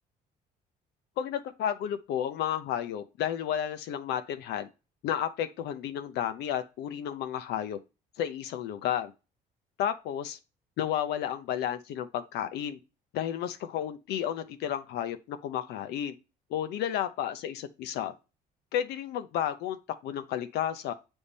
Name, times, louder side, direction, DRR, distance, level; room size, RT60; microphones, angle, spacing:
voice 1, 1.2-4.7 5.0-7.8 8.2-9.1 9.8-10.4 10.8-12.8 13.1-16.1 16.5-18.1 18.7-20.9, left 10 dB, 80° left, 0.7 m, -32 dB
7.1 x 3.6 x 4.1 m
cardioid pair, 110°, 17 cm